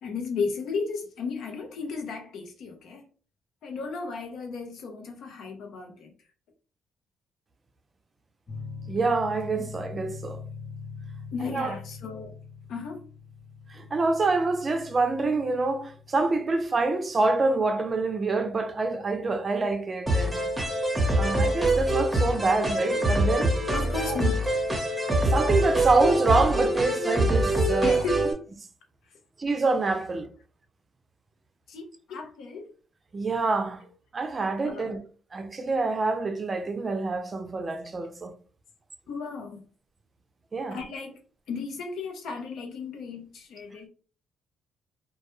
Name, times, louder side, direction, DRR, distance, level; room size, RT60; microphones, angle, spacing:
voice 1, 0.0-3.1 3.6-6.1 11.3-12.3 12.7-13.0 23.7-24.4 27.8-28.4 31.7-32.7 34.6-35.0 39.1-39.6 40.7-41.2 41.5-43.9, left 4 dB, 75° left, 0.7 m, -34 dB
sound 1, 8.5-19.7, left 5 dB, 30° left, 0.8 m, -43 dB
voice 2, 8.9-10.4 11.4-11.7 13.7-20.5 21.2-23.5 25.3-28.0 29.4-30.3 33.1-33.8 34.1-35.0 35.3-38.3 40.5-40.8, right 3 dB, 35° right, 0.4 m, -26 dB
sound 2, 20.1-28.3, right 1 dB, 10° right, 0.8 m, -25 dB
2.2 x 2.1 x 3.0 m
cardioid pair, 90°, 0 cm